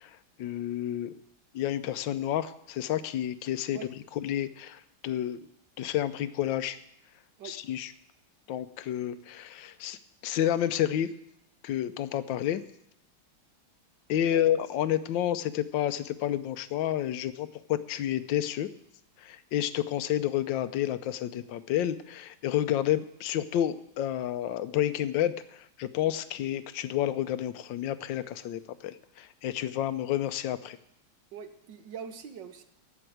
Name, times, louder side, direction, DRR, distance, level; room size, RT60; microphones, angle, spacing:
voice 1, 0.4-1.1 1.5-3.8 4.2-5.4 5.8-6.8 7.4-7.9 8.5-10.0 10.2-11.1 11.6-12.6 14.1-18.7 19.2-30.8, left 11 dB, 70° left, 13 dB, 1.3 m, -30 dB
voice 2, 31.3-32.6, right 7 dB, 65° right, 9 dB, 1.5 m, -42 dB
12.0 x 7.1 x 9.3 m, 0.77 s
omnidirectional pair, 2.3 m